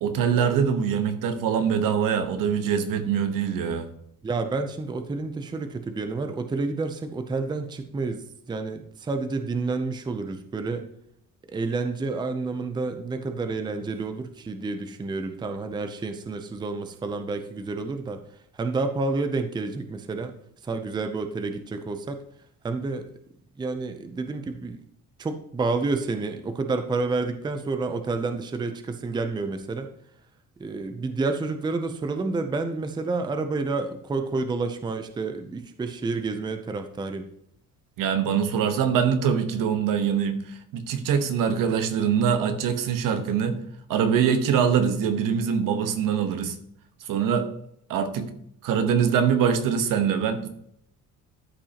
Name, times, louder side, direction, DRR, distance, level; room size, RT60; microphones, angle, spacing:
voice 1, 0.0-3.9 38.0-43.6 43.9-46.6 47.0-47.5 47.9-48.3 48.6-50.5, right 7 dB, 75° right, 8 dB, 1.2 m, -23 dB
voice 2, 4.2-8.2 8.5-10.8 11.5-18.2 18.6-20.3 20.6-22.2 22.6-23.1 23.6-24.8 25.2-29.9 30.6-37.3, right 3 dB, 15° right, 8 dB, 0.5 m, -29 dB
12.5 x 5.3 x 2.9 m, 0.70 s
cardioid pair, 155°, 33 cm